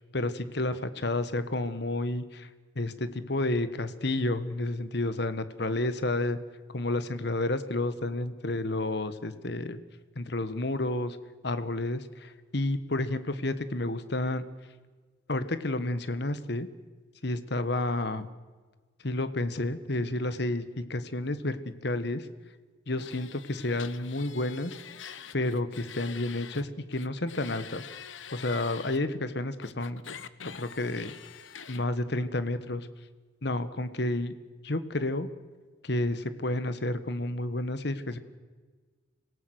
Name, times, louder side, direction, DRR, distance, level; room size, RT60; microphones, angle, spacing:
voice 1, 0.1-2.5 2.7-6.4 6.7-9.8 10.1-11.2 11.4-14.4 15.3-16.7 17.2-18.3 19.0-22.3 22.9-24.8 25.3-27.8 28.3-30.0 30.4-31.1 31.7-32.9 33.4-34.3 34.6-35.3 35.8-38.2, left 2 dB, 60° left, 12 dB, 1.4 m, -30 dB
sound 1, 23.0-26.6 26.9-29.0 29.6-31.8, left 7 dB, 80° left, 1.0 m, -45 dB
25.0 x 17.5 x 7.9 m, 1.4 s
head